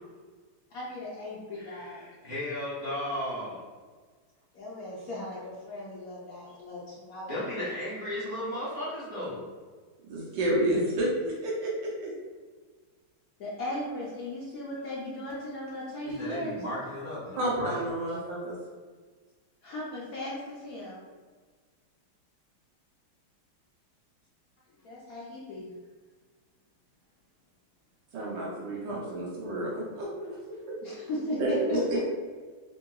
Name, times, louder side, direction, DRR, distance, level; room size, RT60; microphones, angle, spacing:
voice 1, 0.7-2.1 4.5-7.4 13.4-16.6 19.6-21.0 24.8-25.7 30.8-31.8, left 1 dB, 80° left, -7 dB, 0.8 m, -37 dB
voice 2, 1.6-3.6 7.3-9.4 16.0-17.8, left 1 dB, 30° left, -10 dB, 0.8 m, -35 dB
voice 3, 10.1-12.1 17.4-18.6 28.1-30.3 30.7-30.8 31.4-31.8, right 1 dB, 70° right, -4 dB, 1.3 m, -30 dB
3.7 x 2.8 x 2.3 m, 1.5 s
omnidirectional pair, 2.3 m